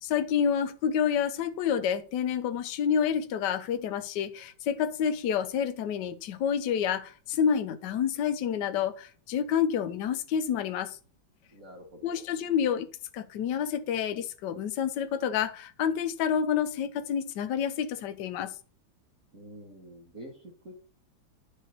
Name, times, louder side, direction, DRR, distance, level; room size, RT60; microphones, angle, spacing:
voice 1, 0.0-11.0 12.0-12.9 13.1-18.5, left 8 dB, 70° left, 1.3 m, -28 dB
voice 2, 11.5-12.3 19.3-20.7, right 1 dB, 45° right, 2.4 m, -47 dB
11.0 x 6.5 x 3.0 m
omnidirectional pair, 2.1 m